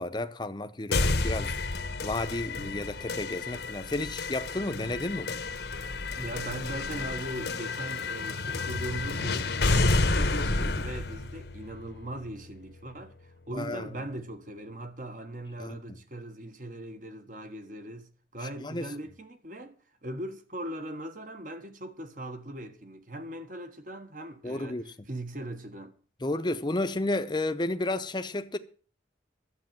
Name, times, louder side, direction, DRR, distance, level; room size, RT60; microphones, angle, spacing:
voice 1, 0.0-1.5 2.0-5.4 13.5-13.9 15.6-16.0 18.6-18.9 24.4-24.9 26.2-28.6, left 2 dB, 25° left, 0.8 m, -32 dB
sound 1, 0.9-12.9, left 3 dB, 65° left, 1.1 m, -30 dB
voice 2, 6.1-19.7 20.0-24.8 25.1-26.0, right 1 dB, 45° right, 1.5 m, -39 dB
12.0 x 8.2 x 7.7 m
head